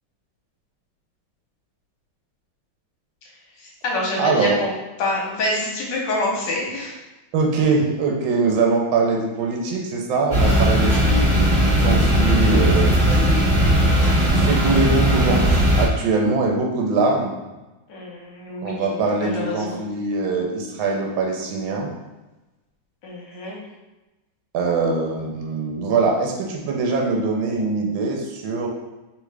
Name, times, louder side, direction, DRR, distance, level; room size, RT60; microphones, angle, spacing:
voice 1, 3.6-4.7 5.0-7.0 10.5-10.6 17.9-19.8 23.0-23.6, left 2 dB, 65° left, -3 dB, 1.5 m, -27 dB
voice 2, 4.2-4.6 7.3-13.3 14.3-17.3 18.6-21.9 24.5-28.7, right 3 dB, 80° right, 0 dB, 1.5 m, -22 dB
sound 1, 10.3-15.9, equal, 35° right, 1.1 m, -17 dB
3.6 x 3.5 x 3.3 m, 1.1 s
omnidirectional pair, 2.1 m